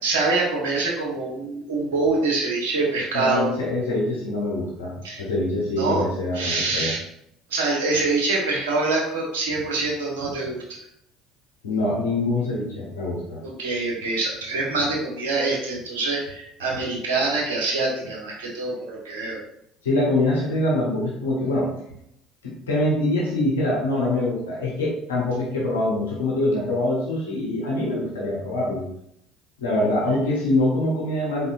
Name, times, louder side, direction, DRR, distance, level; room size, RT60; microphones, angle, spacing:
voice 1, 0.0-3.5 5.0-5.2 5.7-6.1 6.3-7.0 7.5-10.8 13.4-19.4, right 3 dB, 75° right, -2 dB, 1.3 m, -25 dB
voice 2, 3.1-4.9 5.2-6.9 11.6-13.4 19.8-21.7 22.4-28.8 29.6-31.5, left 1 dB, 80° left, -4 dB, 1.0 m, -24 dB
4.2 x 4.2 x 2.6 m, 0.75 s
hypercardioid pair, 65°, 0 cm